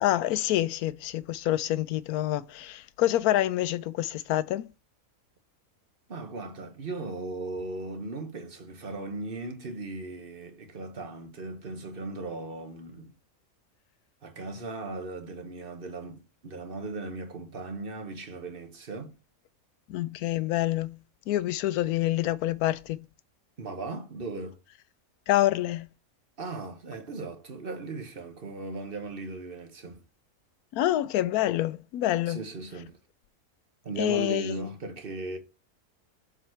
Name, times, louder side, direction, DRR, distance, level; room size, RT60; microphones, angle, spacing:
voice 1, 0.0-4.7 19.9-21.0 21.3-23.0 25.3-25.9 30.7-32.4 34.0-34.5, left 14 dB, 80° left, 1.1 m, -27 dB
voice 2, 6.1-13.1 14.2-19.1 23.6-24.6 26.4-30.0 32.3-33.0 33.8-35.4, right 3 dB, 40° right, 1.2 m, -37 dB
7.2 x 4.0 x 4.5 m
omnidirectional pair, 1.6 m